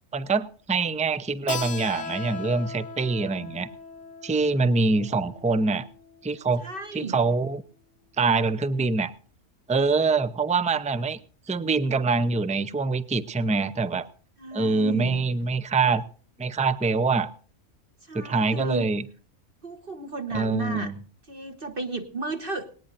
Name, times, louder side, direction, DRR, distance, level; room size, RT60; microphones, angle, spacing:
voice 1, 0.1-3.7 4.2-5.9 6.2-6.6 6.9-7.6 8.2-9.1 9.7-11.2 11.5-14.1 14.5-16.0 16.4-17.3 18.1-19.0 20.3-20.9, right 4 dB, 10° right, 13 dB, 0.3 m, -24 dB
Keyboard (musical), 1.5-6.8, left 5 dB, 60° left, 1.1 m, -39 dB
voice 2, 6.6-7.2 14.4-15.2 18.1-18.9 19.6-20.9 21.3-22.7, right 3 dB, 45° right, 5 dB, 1.4 m, -33 dB
19.0 x 18.5 x 2.6 m, 0.43 s
omnidirectional pair, 1.4 m